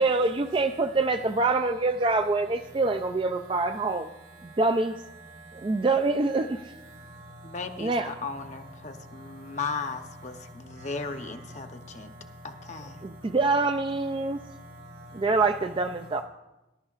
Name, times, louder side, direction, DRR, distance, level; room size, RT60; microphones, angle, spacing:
voice 1, 0.0-4.1 4.6-5.0 5.6-6.6 7.8-8.1 13.0-14.4 15.1-16.2, right 3 dB, 25° right, 7 dB, 0.3 m, -25 dB
voice 2, 3.4-4.6 5.2-5.9 6.4-8.2 8.8-9.6 10.3-13.4 14.0-15.4 16.1-16.2, equal, 80° right, -1 dB, 4.1 m, -47 dB
voice 3, 7.4-12.1 12.4-13.1, left 4 dB, 40° left, 5 dB, 0.8 m, -36 dB
20.5 x 11.5 x 2.4 m, 1.0 s
head